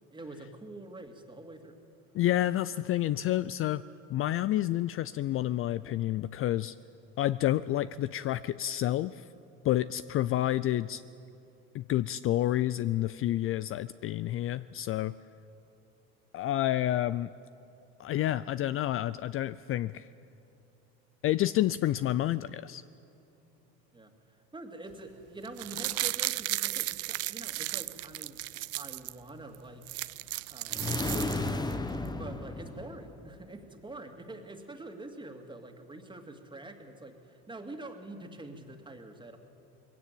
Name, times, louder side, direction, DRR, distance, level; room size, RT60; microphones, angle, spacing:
voice 1, 0.1-1.8 23.9-24.1 24.5-28.4 28.7-29.9 30.5-31.5 32.1-39.4, right 2 dB, 15° right, 4 dB, 2.3 m, -45 dB
voice 2, 2.1-3.8 4.1-6.8 7.2-9.2 9.6-11.0 11.7-15.1 16.3-17.3 18.0-20.1 21.2-22.8, left 13 dB, 45° left, 16 dB, 0.4 m, -29 dB
sound 1, 25.4-29.1 29.5-29.6 29.8-31.7 32.1-32.2, right 17 dB, 50° right, 0.5 m, -34 dB
sound 2, 30.7-33.3, left 2 dB, 15° left, 1.2 m, -33 dB
20.5 x 16.5 x 9.1 m, 2.8 s
supercardioid pair, 95°, 32 cm